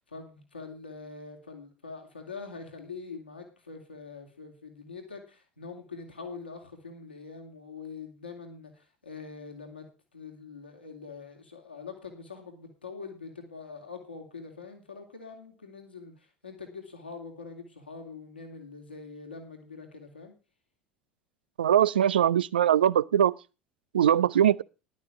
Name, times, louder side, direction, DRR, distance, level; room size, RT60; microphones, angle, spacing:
voice 1, 0.0-9.9 10.1-20.3, left 4 dB, 85° left, 3.1 m, -44 dB
voice 2, 21.6-23.3 23.9-24.6, right 10 dB, 75° right, 0.5 m, -22 dB
13.0 x 12.0 x 3.5 m
figure-of-eight pair, 70°, 5 cm